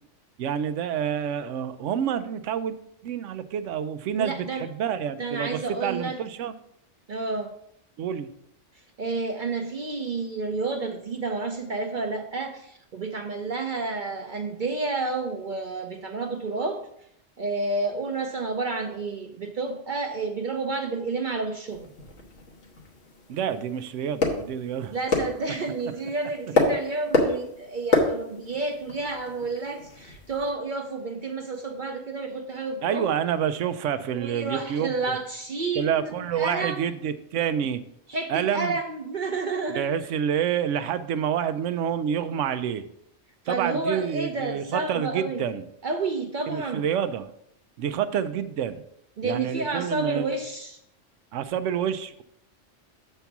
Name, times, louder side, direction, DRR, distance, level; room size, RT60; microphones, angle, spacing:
voice 1, 0.4-2.8 3.0-6.5 8.0-8.3 23.3-24.9 32.8-35.1 35.7-37.8 38.3-38.8 39.7-42.8 43.5-45.7 46.5-47.3 47.8-48.8 49.2-50.4 51.3-52.2, right 8 dB, 85° right, 12 dB, 0.9 m, -28 dB
voice 2, 4.2-4.7 5.2-6.2 7.1-7.5 8.7-16.8 17.4-21.9 24.8-33.1 34.1-36.9 38.1-39.8 43.4-45.4 45.8-46.9 49.2-50.8, right 3 dB, 50° right, 4 dB, 0.7 m, -30 dB
sound 1, 21.7-30.5, left 3 dB, 85° left, 1.6 m, -29 dB
7.0 x 4.4 x 5.9 m, 0.74 s
omnidirectional pair, 1.2 m